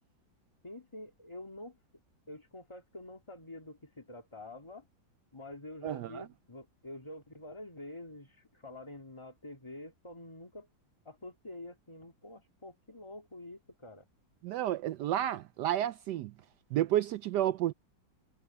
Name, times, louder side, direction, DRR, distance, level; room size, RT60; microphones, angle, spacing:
voice 1, 0.6-1.8 2.3-4.9 5.3-10.7 11.0-14.1, left 1 dB, 15° left, 2.3 m, -47 dB
voice 2, 5.8-6.2 14.4-16.3 16.7-17.7, right 12 dB, 75° right, 1.1 m, -31 dB
omnidirectional pair, 2.0 m